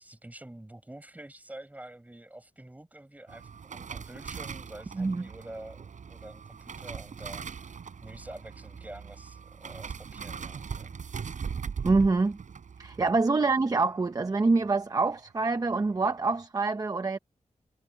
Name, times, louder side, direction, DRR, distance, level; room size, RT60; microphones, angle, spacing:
voice 1, 0.0-11.0 12.9-13.2, right 1 dB, 10° right, 6.0 m, -47 dB
sound 1, 3.3-14.7 15.0-15.3 15.6-16.1 16.3-16.4, right 6 dB, 75° right, 7.6 m, -40 dB
voice 2, 11.8-12.4 12.8-17.2, right 3 dB, 30° right, 0.8 m, -25 dB
wide cardioid pair, 135°, 13 cm